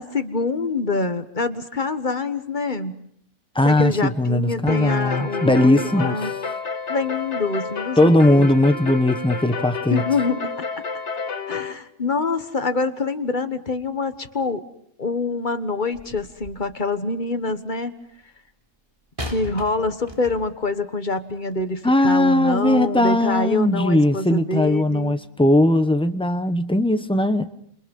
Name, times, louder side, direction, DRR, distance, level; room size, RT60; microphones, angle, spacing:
voice 1, 0.0-2.9 3.6-6.3 6.9-8.5 9.9-10.7 11.5-14.6 15.0-17.9 19.2-25.2, left 3 dB, 35° left, 1.5 m, -25 dB
voice 2, 3.5-6.2 8.0-10.0 21.8-27.5, left 1 dB, 5° left, 1.0 m, -19 dB
sound 1, 4.7-11.7, left 5 dB, 55° left, 1.8 m, -30 dB
sound 2, 15.9-16.8 19.2-20.7 21.5-21.6, equal, 25° right, 3.2 m, -37 dB
29.5 x 28.5 x 5.5 m
omnidirectional pair, 1.5 m